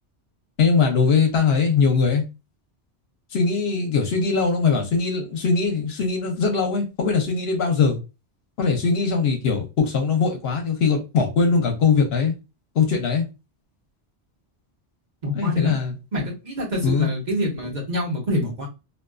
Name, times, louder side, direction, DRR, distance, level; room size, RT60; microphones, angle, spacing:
voice 1, 0.6-2.2 3.3-8.0 8.6-12.3 12.7-13.3 15.3-16.0 16.8-17.1, left 5 dB, 70° left, 3 dB, 0.9 m, -21 dB
voice 2, 15.2-15.7 16.1-18.7, equal, 45° right, -2 dB, 1.0 m, -26 dB
2.5 x 2.4 x 2.2 m, 0.27 s
omnidirectional pair, 1.1 m